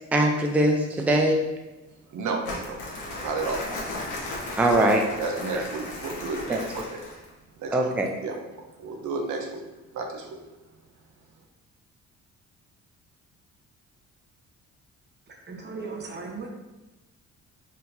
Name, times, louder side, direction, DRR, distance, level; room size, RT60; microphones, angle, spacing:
voice 1, 0.1-1.4 4.6-5.0 5.5-5.6 6.5-6.6 7.7-8.1, right 1 dB, 5° right, 1 dB, 0.4 m, -21 dB
voice 2, 2.1-2.8 3.2-3.6 5.2-7.0 7.6-7.9 8.2-8.4 8.8-9.6 9.9-10.4, right 3 dB, 75° right, 2 dB, 0.7 m, -32 dB
Crumpling crinkling, 2.4-7.3, left 2 dB, 90° left, 1.2 m, -36 dB
voice 3, 15.5-16.5, right 4 dB, 35° right, 1 dB, 1.0 m, -36 dB
4.4 x 3.8 x 2.7 m, 1.1 s
cardioid pair, 90°, 30 cm